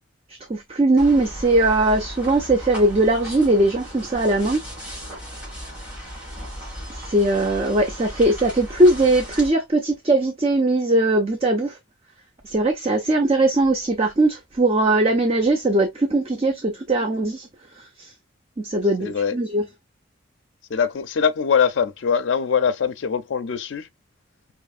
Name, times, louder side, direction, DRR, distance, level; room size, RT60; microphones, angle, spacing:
voice 1, 0.5-4.6 7.0-11.8 12.4-17.5 17.8-18.1 18.6-19.6, right 2 dB, 30° right, 0.6 m, -20 dB
sound 1, 1.0-9.5, equal, 5° right, 2.6 m, -36 dB
voice 2, 19.0-19.3 20.7-23.9, left 6 dB, 65° left, 0.4 m, -22 dB
5.0 x 3.0 x 2.3 m
head